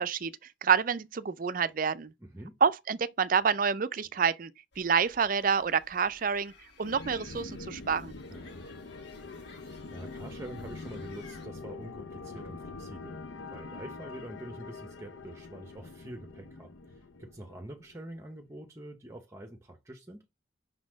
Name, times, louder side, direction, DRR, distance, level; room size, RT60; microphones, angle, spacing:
voice 1, 0.0-2.1 2.6-6.5 6.8-8.1, right 6 dB, 45° right, 0.4 m, -28 dB
voice 2, 2.2-2.6 8.3-8.7 9.6-13.2 13.5-20.2, right 1 dB, 15° right, 0.9 m, -46 dB
sound 1, 4.7-11.5, left 3 dB, 55° left, 2.6 m, -56 dB
sound 2, 6.8-18.2, left 3 dB, 75° left, 0.6 m, -44 dB
5.8 x 4.1 x 6.2 m
head